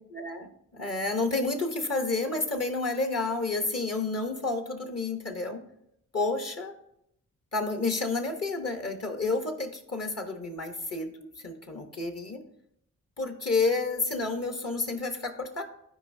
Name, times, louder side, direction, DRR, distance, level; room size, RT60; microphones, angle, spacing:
voice 1, 0.1-5.6 6.1-6.7 7.5-12.4 13.2-15.6, left 3 dB, 45° left, 5 dB, 1.1 m, -30 dB
12.0 x 4.7 x 2.7 m, 0.76 s
supercardioid pair, 40°, 33 cm